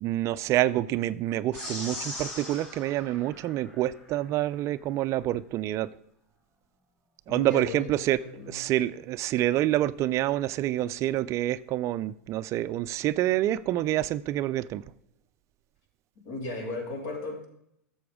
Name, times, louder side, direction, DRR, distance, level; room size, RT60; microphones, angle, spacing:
voice 1, 0.0-5.9 7.3-8.2 8.5-14.8, right 14 dB, 40° right, 15 dB, 0.4 m, -27 dB
sound 1, 1.5-4.2, left 1 dB, 15° left, 3.8 m, -40 dB
voice 2, 7.3-8.6 16.2-17.4, left 2 dB, 60° left, 2 dB, 3.1 m, -36 dB
12.5 x 7.1 x 3.6 m, 0.74 s
hypercardioid pair, 105°, 8 cm